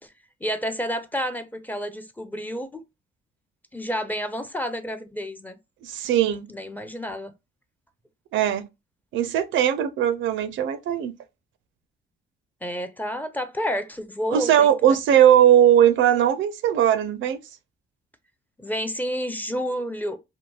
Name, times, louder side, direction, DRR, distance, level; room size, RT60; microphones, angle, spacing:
voice 1, 0.4-2.8 3.7-5.6 6.5-7.3 12.6-15.0 18.6-20.2, equal, 10° left, 0.5 m, -30 dB
voice 2, 5.8-6.5 8.3-8.6 9.1-11.1 14.3-17.4, right 10 dB, 75° right, 0.4 m, -19 dB
2.8 x 2.6 x 2.2 m
cardioid pair, 90°, 20 cm